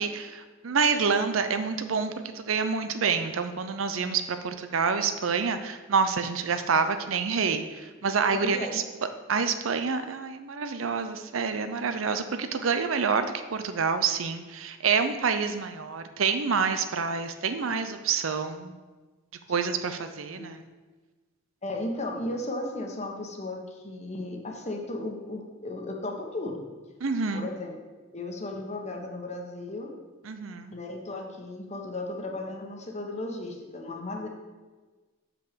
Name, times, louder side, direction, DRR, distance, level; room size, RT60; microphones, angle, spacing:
voice 1, 0.0-8.8 9.3-18.7 19.5-20.6 27.0-27.5 30.2-30.7, right 5 dB, 85° right, 9 dB, 0.6 m, -27 dB
voice 2, 8.3-8.8 20.3-20.5 21.6-26.6 27.3-27.7 28.1-29.9 30.7-34.3, left 2 dB, 35° left, 1 dB, 1.3 m, -35 dB
6.8 x 6.0 x 6.7 m, 1.3 s
head